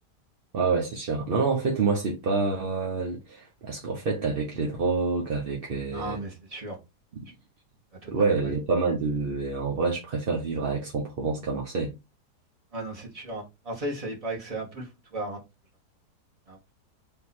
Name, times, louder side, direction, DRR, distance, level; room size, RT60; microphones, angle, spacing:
voice 1, 0.5-6.2 8.1-11.9, right 4 dB, 50° right, 0.7 m, -27 dB
voice 2, 5.9-6.8 8.0-8.5 12.7-14.8 15.1-15.4 16.5-16.7, right 1 dB, 25° right, 1.5 m, -35 dB
3.5 x 2.9 x 4.2 m
omnidirectional pair, 1.7 m